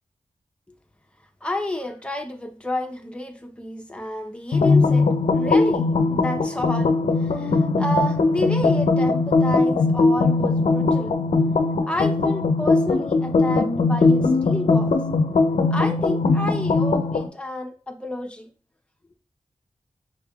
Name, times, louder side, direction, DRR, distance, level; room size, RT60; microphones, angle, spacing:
voice 1, 1.4-5.1 5.3-11.2 11.9-14.9 15.7-18.5, left 1 dB, 10° left, 0.8 m, -30 dB
sound 1, 4.5-17.3, left 3 dB, 70° left, 0.5 m, -20 dB
6.4 x 3.3 x 2.3 m
wide cardioid pair, 90°, 12 cm